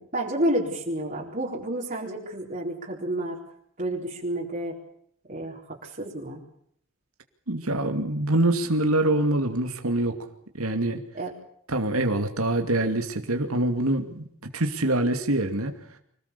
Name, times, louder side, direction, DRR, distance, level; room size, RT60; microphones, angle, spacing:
voice 1, 0.0-3.4 3.8-4.7 5.3-6.4 11.1-11.3, right 1 dB, 40° right, -3 dB, 4.2 m, -30 dB
voice 2, 7.5-10.2 10.5-11.0 11.7-14.3 14.5-15.7, right 1 dB, 85° right, 5 dB, 2.6 m, -25 dB
26.5 x 18.5 x 7.0 m, 0.67 s
head